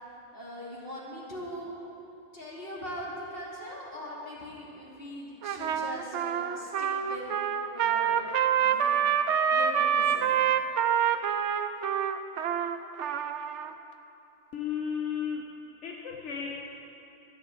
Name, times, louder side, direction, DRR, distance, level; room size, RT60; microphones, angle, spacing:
voice 1, 0.3-1.8 2.3-7.3 7.7-8.2 8.5-9.0 9.5-10.3, equal, 55° left, -4 dB, 2.7 m, -41 dB
Trumpet, 5.4-13.7, right 8 dB, 90° right, 1.0 m, -27 dB
voice 2, 14.5-15.5 15.8-16.8, left 7 dB, 85° left, 0 dB, 1.3 m, -34 dB
13.0 x 9.1 x 7.6 m, 2.8 s
omnidirectional pair, 1.2 m